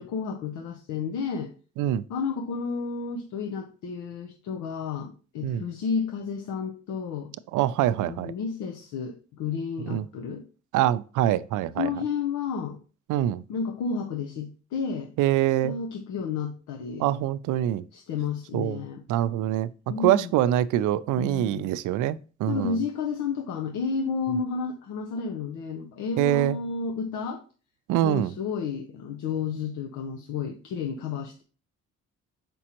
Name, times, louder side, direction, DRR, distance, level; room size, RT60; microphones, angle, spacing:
voice 1, 0.0-1.5 2.1-7.3 8.0-10.4 11.8-12.8 13.5-15.1 15.6-17.1 17.9-19.0 19.9-20.3 21.2-21.7 22.5-27.4 28.0-31.4, left 5 dB, 90° left, 0.7 m, -31 dB
voice 2, 7.5-8.3 9.9-10.1 10.7-11.9 13.1-13.4 15.2-15.8 17.0-17.8 18.5-18.8 19.1-19.7 20.0-22.8 26.2-26.6 27.9-28.3, right 12 dB, 85° right, 0.4 m, -24 dB
6.2 x 5.2 x 2.9 m
cardioid pair, 90°, 30 cm